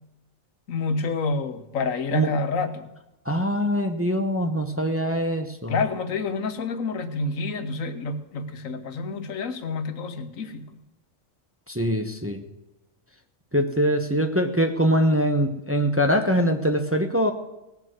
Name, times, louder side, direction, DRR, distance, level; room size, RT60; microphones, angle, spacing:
voice 1, 0.7-2.9 5.7-10.8, left 3 dB, 80° left, 9 dB, 1.5 m, -28 dB
voice 2, 3.3-5.8 11.7-12.4 13.5-17.3, equal, 10° right, 5 dB, 0.9 m, -23 dB
18.0 x 6.9 x 7.8 m, 0.98 s
omnidirectional pair, 1.4 m